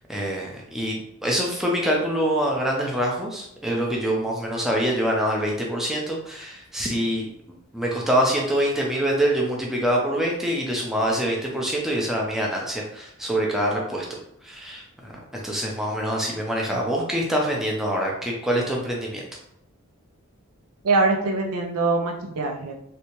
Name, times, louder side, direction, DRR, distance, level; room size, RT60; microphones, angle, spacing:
voice 1, 0.1-7.3 7.7-14.1 14.4-14.8 15.1-19.2, equal, ahead, -2 dB, 0.5 m, -25 dB
voice 2, 20.8-22.7, right 3 dB, 85° right, 2 dB, 0.5 m, -23 dB
3.2 x 2.8 x 3.0 m, 0.75 s
head